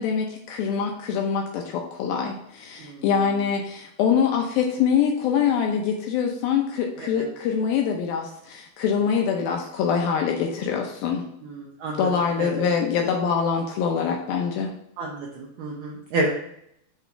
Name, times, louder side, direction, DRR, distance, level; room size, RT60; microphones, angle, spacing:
voice 1, 0.0-11.2 12.0-14.7, left 7 dB, 75° left, 2 dB, 2.4 m, -24 dB
voice 2, 11.4-12.1 12.4-12.7 15.0-16.3, right 2 dB, 70° right, -3 dB, 2.3 m, -30 dB
8.1 x 3.6 x 5.7 m, 0.74 s
omnidirectional pair, 4.5 m